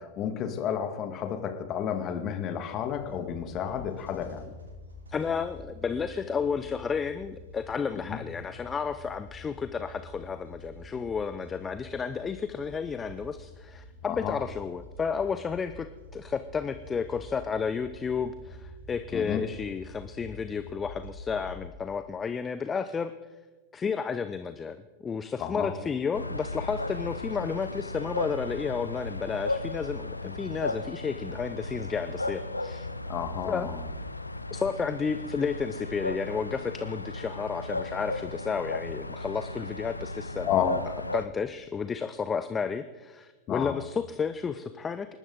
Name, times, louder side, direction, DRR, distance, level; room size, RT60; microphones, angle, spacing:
voice 1, 0.0-4.5 7.9-8.2 14.1-14.4 19.1-19.4 25.4-25.7 33.1-33.8 40.4-40.8 43.5-43.8, left 9 dB, 35° left, 6 dB, 2.0 m, -31 dB
sound 1, 2.9-21.7, left 1 dB, 70° right, 2.9 m, -47 dB
voice 2, 5.1-15.9 16.1-23.1 23.7-24.8 25.0-32.9 33.4-33.7 34.5-40.5 41.1-45.1, left 6 dB, 20° left, 10 dB, 0.7 m, -32 dB
sound 2, 26.1-41.2, left 2 dB, 85° left, 0.7 m, -35 dB
28.5 x 12.5 x 4.0 m, 1.3 s
figure-of-eight pair, 90°, 0 cm